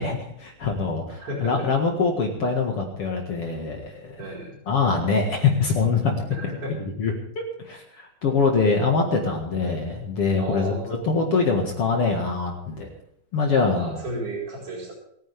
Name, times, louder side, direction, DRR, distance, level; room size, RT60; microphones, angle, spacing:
voice 1, 0.0-4.2 4.7-6.2 7.0-7.1 7.7-10.8 11.0-12.9 13.3-14.0, left 4 dB, 55° left, 1 dB, 2.5 m, -23 dB
voice 2, 1.2-1.7 4.2-4.6 6.3-6.8 10.3-11.1 13.7-14.9, right 1 dB, 50° right, -4 dB, 5.6 m, -33 dB
28.5 x 10.5 x 3.5 m, 0.74 s
omnidirectional pair, 3.3 m